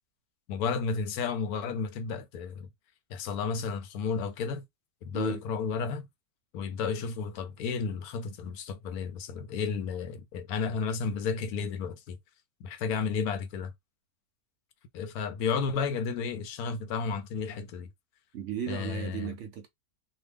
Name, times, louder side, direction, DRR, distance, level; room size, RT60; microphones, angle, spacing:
voice 1, 0.5-2.7 3.1-4.6 5.0-6.1 6.5-12.2 12.6-13.7 14.9-17.9 18.7-19.3, left 5 dB, 80° left, 1.1 m, -32 dB
voice 2, 18.3-19.7, right 9 dB, 65° right, 0.8 m, -35 dB
2.8 x 2.3 x 3.3 m
omnidirectional pair, 1.6 m